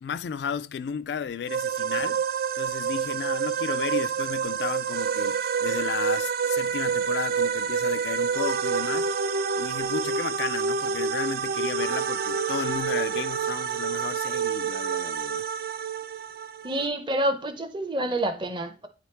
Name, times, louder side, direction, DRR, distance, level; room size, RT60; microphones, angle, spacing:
voice 1, 0.0-2.2 2.5-9.1 9.6-15.4, left 7 dB, 70° left, 0.3 m, -34 dB
sound 1, 1.5-16.9, right 6 dB, 55° right, 0.4 m, -28 dB
voice 2, 16.6-18.9, right 1 dB, 25° right, 0.7 m, -28 dB
9.2 x 3.5 x 4.3 m
head